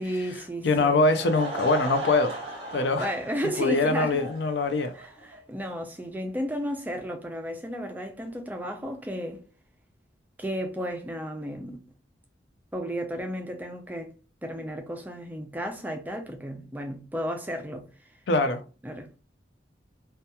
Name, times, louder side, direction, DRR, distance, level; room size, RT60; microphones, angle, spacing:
voice 1, 0.0-1.0 2.9-4.2 4.9-9.4 10.4-11.8 12.7-14.2 14.4-17.9 18.8-19.1, equal, 10° right, 0.3 m, -33 dB
voice 2, 0.6-2.4 2.7-3.1 3.6-4.9 18.3-18.6, left 3 dB, 65° left, 0.4 m, -23 dB
Laughter / Crowd, 0.9-5.4, right 2 dB, 30° right, 0.8 m, -38 dB
2.8 x 2.2 x 2.2 m
head